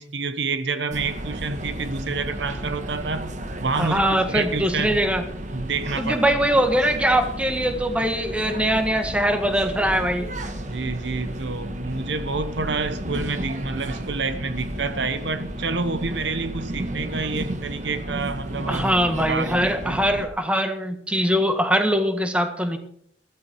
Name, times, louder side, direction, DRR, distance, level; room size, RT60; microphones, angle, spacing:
voice 1, 0.0-3.3 3.6-5.0 5.5-6.4 10.7-20.0, right 4 dB, 65° right, 1.0 m, -28 dB
sound 1, 0.9-20.3, right 1 dB, 40° right, 1.7 m, -33 dB
voice 2, 3.8-5.2 6.0-10.3 18.7-22.8, equal, 5° right, 1.8 m, -22 dB
15.0 x 14.0 x 4.6 m
head